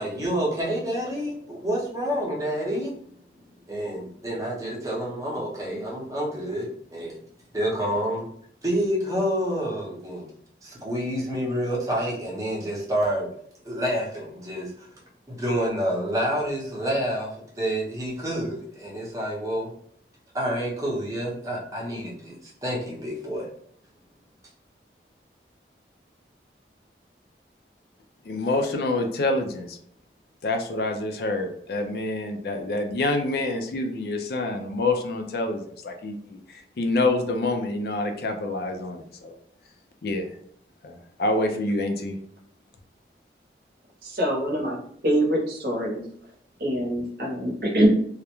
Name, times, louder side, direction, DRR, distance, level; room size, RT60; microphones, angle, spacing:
voice 1, 0.0-2.9 3.7-7.1 7.5-8.3 8.6-10.3 10.6-13.3 13.6-14.9 15.3-17.3 17.6-19.7 20.3-22.3 22.6-23.5, equal, 20° right, -3 dB, 0.6 m, -28 dB
voice 2, 28.2-29.8 30.4-39.3 40.0-40.3 40.8-42.1, left 2 dB, 60° left, 5 dB, 0.4 m, -27 dB
voice 3, 44.0-44.8 45.0-46.0 46.6-47.9, right 1 dB, 55° right, -1 dB, 0.7 m, -24 dB
2.3 x 2.1 x 2.9 m, 0.64 s
head